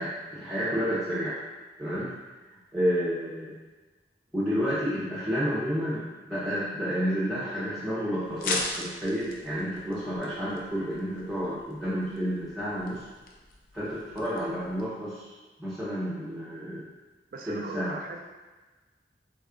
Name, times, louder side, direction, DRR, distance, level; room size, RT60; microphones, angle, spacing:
voice 1, 0.0-1.4 1.8-2.1 2.7-3.5 4.3-13.0 13.7-15.3 15.6-16.8 17.4-18.0, equal, ahead, -12 dB, 0.6 m, -30 dB
sound 1, 8.2-14.9, left 3 dB, 50° left, 0.4 m, -39 dB
voice 2, 17.3-18.2, right 3 dB, 50° right, 3 dB, 0.3 m, -38 dB
3.5 x 2.3 x 3.5 m, 1.2 s
head